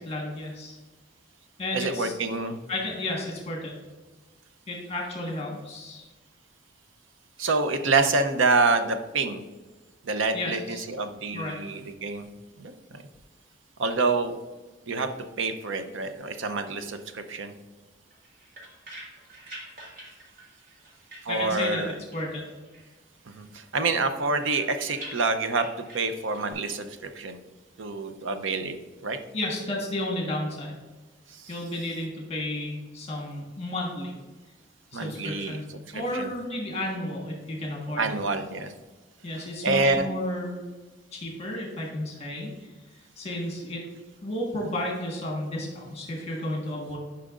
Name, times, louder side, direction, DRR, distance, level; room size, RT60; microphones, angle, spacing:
voice 1, 0.0-0.8 1.6-2.1 2.7-3.7 4.7-6.0 10.3-10.8 11.3-11.6 21.3-21.8 22.1-22.5 29.3-30.8 31.5-34.1 34.9-35.7 35.9-38.1 39.2-40.7 41.1-42.7 43.2-43.8 44.2-47.0, left 1 dB, 30° left, -1 dB, 1.5 m, -32 dB
voice 2, 1.7-2.6 7.4-9.4 10.0-12.3 12.6-13.0 13.8-14.4 14.9-15.1 15.4-17.5 21.2-21.9 23.3-27.4 27.8-28.8 29.0-29.2 31.3-31.5 34.9-35.6 35.9-36.3 38.0-38.7 39.6-40.1, right 3 dB, 75° right, 8 dB, 0.6 m, -27 dB
sound 1, 18.1-21.8 22.1-23.0 23.3-26.5, right 1 dB, 45° right, 1.9 m, -46 dB
10.0 x 5.7 x 2.5 m, 1.2 s
head